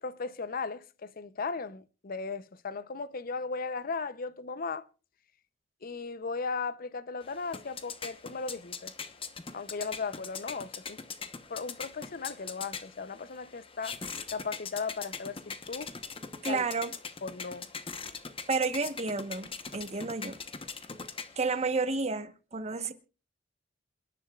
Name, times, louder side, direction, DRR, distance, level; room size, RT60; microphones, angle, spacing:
voice 1, 0.0-4.9 5.8-8.9 9.5-11.0 11.5-14.0 14.3-15.9 16.4-16.6 17.2-17.7, left 4 dB, 50° left, 0.7 m, -36 dB
sound 1, 7.2-21.7, left 5 dB, 30° left, 1.0 m, -42 dB
voice 2, 16.4-16.9 18.5-20.4 21.4-22.9, right 4 dB, 35° right, 1.1 m, -31 dB
28.0 x 10.5 x 2.4 m
head